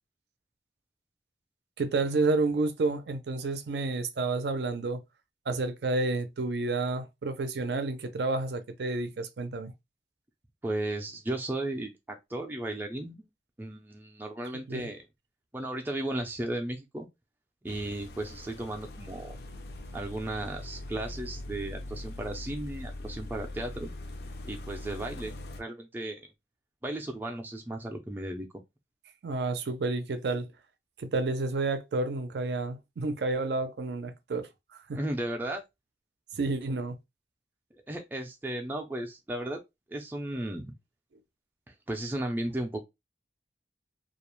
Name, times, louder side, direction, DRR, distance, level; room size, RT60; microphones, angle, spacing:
voice 1, 1.8-5.0 5.5-9.7 14.7-14.9 29.2-30.5 31.0-35.0 36.3-37.0, right 3 dB, 75° right, 0.4 m, -30 dB
voice 2, 10.6-13.3 13.6-15.0 15.5-17.1 17.6-19.3 19.9-23.9 24.4-26.3 26.8-28.5 34.9-35.6 37.9-39.6 39.9-40.7 41.7-42.8, right 1 dB, 10° right, 0.4 m, -35 dB
sound 1, 17.7-25.6, left 1 dB, 65° left, 0.4 m, -41 dB
2.3 x 2.0 x 3.0 m
head